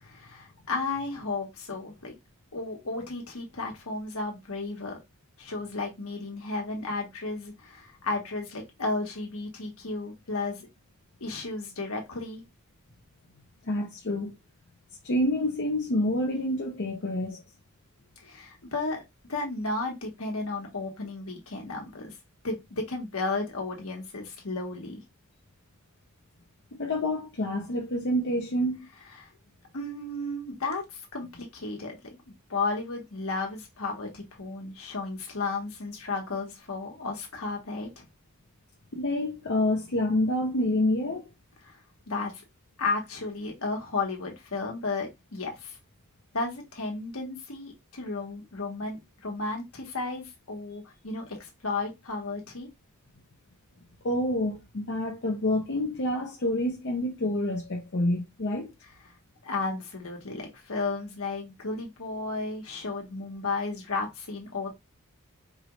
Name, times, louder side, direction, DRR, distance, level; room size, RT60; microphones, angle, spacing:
voice 1, 0.0-2.1 2.5-5.0 5.4-10.7 11.2-12.4 18.2-19.0 19.3-22.1 22.4-25.0 29.2-29.3 29.7-32.2 32.5-38.1 41.6-41.8 42.1-42.4 42.8-45.8 46.3-52.7 59.4-64.7, left 3 dB, 75° left, 1.4 m, -33 dB
voice 2, 13.6-14.3 15.0-17.4 26.8-28.8 38.9-41.3 54.0-58.7, left 1 dB, 55° left, 0.7 m, -28 dB
4.7 x 2.5 x 3.1 m
head